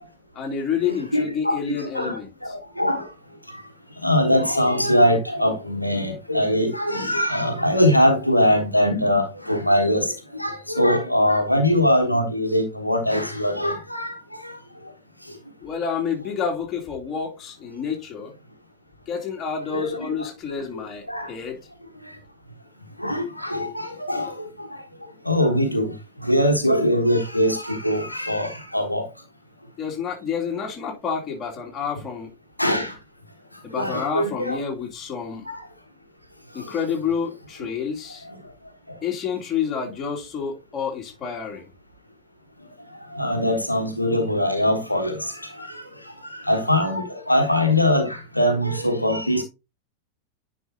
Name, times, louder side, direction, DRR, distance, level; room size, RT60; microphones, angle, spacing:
voice 1, 0.3-2.3 15.6-18.3 19.1-21.6 29.8-32.3 33.6-35.5 36.5-38.2 39.0-41.6, left 6 dB, 25° left, 2.7 m, -29 dB
voice 2, 0.9-3.1 4.0-14.6 19.7-20.3 21.1-21.3 23.0-24.7 25.2-25.9 26.2-29.1 32.6-32.9 33.8-34.6 35.5-35.6 43.1-45.8 46.3-49.4, left 1 dB, 85° left, 1.2 m, -22 dB
9.8 x 5.2 x 2.8 m
figure-of-eight pair, 90°, 0 cm